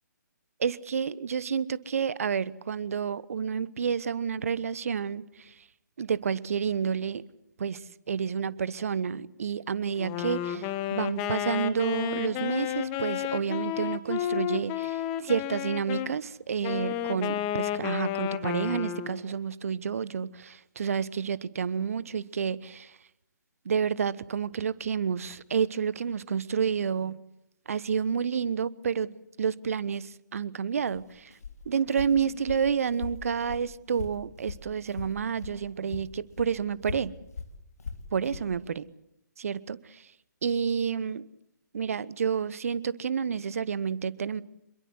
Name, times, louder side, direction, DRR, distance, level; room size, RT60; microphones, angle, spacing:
voice 1, 0.6-5.5 6.0-7.2 7.6-23.0 23.6-27.2 27.7-31.3 31.7-37.1 38.1-38.8 39.4-40.1 40.4-41.2 41.7-44.4, right 7 dB, 50° right, 1.1 m, -30 dB
Wind instrument woodwind instrument, 10.0-16.1 16.6-19.3, left 11 dB, 20° left, 1.4 m, -31 dB
Walk footsteps, 30.8-35.6 35.9-38.5, left 5 dB, 55° left, 3.7 m, -41 dB
26.5 x 22.5 x 8.1 m
figure-of-eight pair, 135°, 10 cm